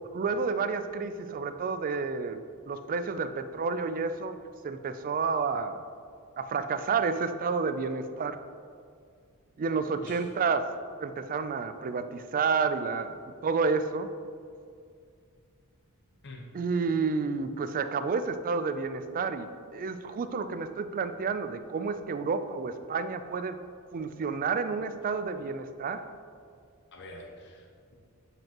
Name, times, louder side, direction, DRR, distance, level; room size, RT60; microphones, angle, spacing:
voice 1, 0.1-4.4 4.6-5.8 6.4-8.4 9.6-10.6 11.0-13.2 13.4-14.1 16.5-23.6 23.9-26.0, right 5 dB, 40° right, 10 dB, 0.3 m, -30 dB
voice 2, 10.0-10.4 16.2-16.5 26.9-27.9, left 1 dB, 50° left, 1 dB, 0.8 m, -47 dB
7.7 x 5.2 x 2.9 m, 2.3 s
head